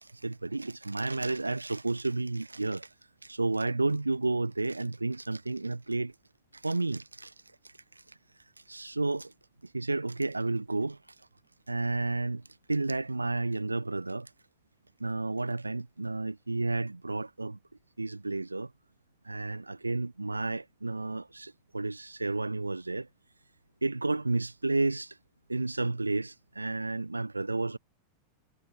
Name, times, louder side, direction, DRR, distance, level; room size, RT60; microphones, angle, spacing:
voice 1, 0.0-2.9 3.2-6.1 6.5-7.3 7.6-8.2 8.7-9.3 9.6-11.0 11.7-12.4 12.7-14.3 15.0-17.6 18.0-18.7 19.2-23.1 23.8-25.2 25.5-27.8, right 2 dB, 80° right, 1.2 m, -31 dB
figure-of-eight pair, 90°, 0 cm